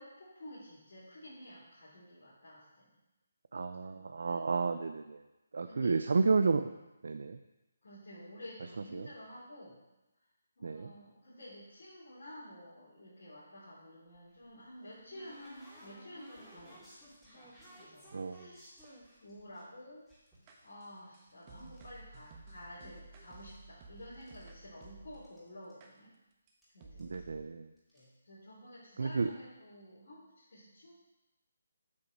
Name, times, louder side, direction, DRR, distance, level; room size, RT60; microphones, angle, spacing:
voice 1, 0.0-3.0 3.9-4.5 5.6-6.2 7.8-9.8 10.6-18.6 19.2-20.0 20.6-26.1 26.7-27.3 27.9-31.0, left 1 dB, 60° left, -10 dB, 3.5 m, -51 dB
voice 2, 3.5-5.2 5.5-6.7 7.0-7.4 8.9-9.1 10.6-10.9 18.1-18.5 27.0-27.7 29.0-29.3, right 4 dB, 65° right, 9 dB, 0.4 m, -31 dB
sound 1, 14.1-19.6 20.1-21.9 22.1-22.9 23.1-24.5 24.8-24.9 25.1-25.4 25.7-25.8 26.6-26.7 27.0-27.2 27.8-28.1, equal, 5° left, 2.7 m, -57 dB
sound 2, 20.5-25.3 25.8-25.9 26.5-26.6 26.8-27.5, right 3 dB, 25° right, 1.2 m, -54 dB
8.4 x 4.9 x 6.1 m, 1.0 s
figure-of-eight pair, 150°, 0 cm